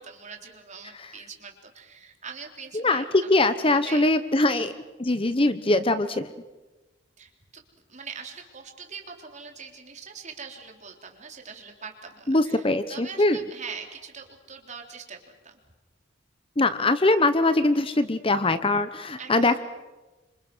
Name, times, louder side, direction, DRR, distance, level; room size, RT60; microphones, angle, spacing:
voice 1, 0.0-3.3 3.7-4.0 4.5-4.7 7.2-7.6 7.9-15.6 19.2-19.5, right 5 dB, 40° right, 3 dB, 3.8 m, -42 dB
voice 2, 2.7-4.7 5.0-6.3 12.3-13.4 16.6-19.6, left 2 dB, 30° left, 11 dB, 1.0 m, -22 dB
29.0 x 25.5 x 6.3 m, 1.1 s
head